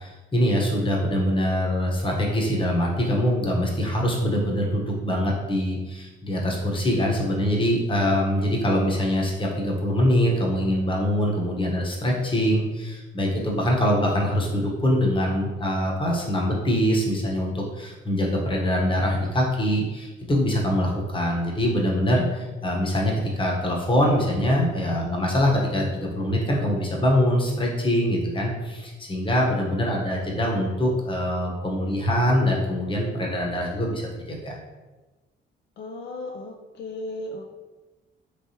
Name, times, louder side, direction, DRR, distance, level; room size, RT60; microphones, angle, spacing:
voice 1, 0.0-34.5, equal, 25° left, -1 dB, 0.9 m, -24 dB
voice 2, 35.8-37.5, left 1 dB, 60° left, 1 dB, 0.4 m, -35 dB
3.3 x 3.2 x 2.8 m, 1.2 s
cardioid pair, 90°, 20 cm